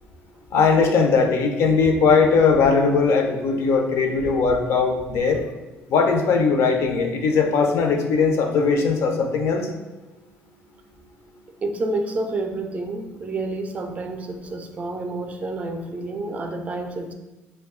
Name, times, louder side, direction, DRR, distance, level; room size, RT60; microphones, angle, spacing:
voice 1, 0.5-5.4 5.9-9.7, left 5 dB, 70° left, 4 dB, 0.5 m, -19 dB
voice 2, 11.6-17.1, right 2 dB, 30° right, 5 dB, 0.4 m, -29 dB
2.7 x 2.2 x 3.5 m, 1.1 s
cardioid pair, 105°, 5 cm